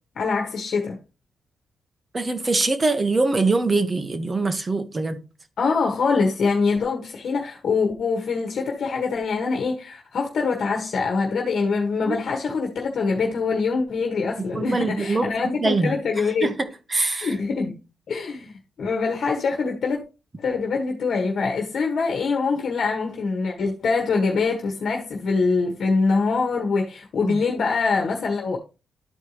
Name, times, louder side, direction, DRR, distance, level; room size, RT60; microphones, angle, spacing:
voice 1, 0.1-1.0 5.6-16.5 17.2-17.7 18.1-20.0 20.4-28.6, left 4 dB, 60° left, 1.5 m, -24 dB
voice 2, 2.1-5.2 12.1-12.2 14.5-15.9 16.4-17.3 27.2-27.4, right 3 dB, 25° right, 1.2 m, -23 dB
12.0 x 4.6 x 3.2 m
cardioid pair, 115°, 0 cm